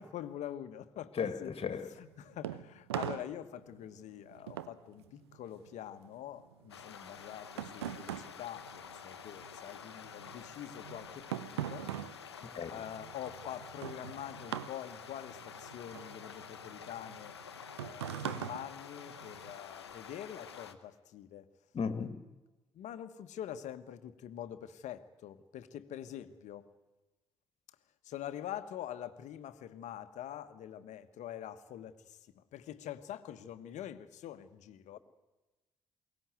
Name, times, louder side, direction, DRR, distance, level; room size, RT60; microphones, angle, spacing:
voice 1, 0.0-1.5 2.0-11.9 12.7-17.4 17.8-21.5 22.7-26.7 28.0-35.0, left 11 dB, 60° left, 1.3 m, -45 dB
voice 2, 1.1-1.9 12.5-12.7 21.7-22.2, left 6 dB, 45° left, 2.1 m, -35 dB
sound 1, 1.9-9.6 9.9-19.5, right 11 dB, 85° right, 0.8 m, -43 dB
sound 2, 6.7-20.7, left 7 dB, 90° left, 0.9 m, -49 dB
22.5 x 18.5 x 9.5 m
figure-of-eight pair, 45°, 13 cm